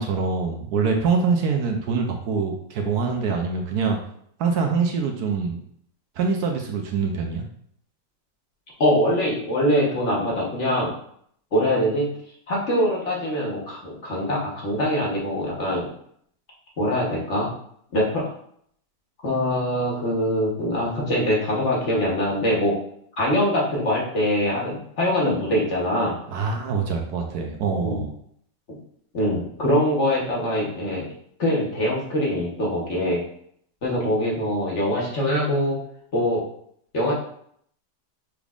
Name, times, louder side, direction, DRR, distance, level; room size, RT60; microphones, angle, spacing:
voice 1, 0.0-4.0 4.4-5.6 6.2-7.4 26.3-28.1, right 5 dB, 70° right, 3 dB, 1.1 m, -24 dB
voice 2, 8.8-10.9 11.5-12.1 12.5-15.9 16.8-17.5 17.9-18.3 19.2-22.7 23.2-26.1 27.8-28.0 28.7-28.8 29.1-31.1 31.4-33.2 33.8-35.8 36.1-36.4 36.9-37.1, equal, 45° left, -4 dB, 1.3 m, -23 dB
6.1 x 3.4 x 2.4 m, 0.66 s
omnidirectional pair, 1.8 m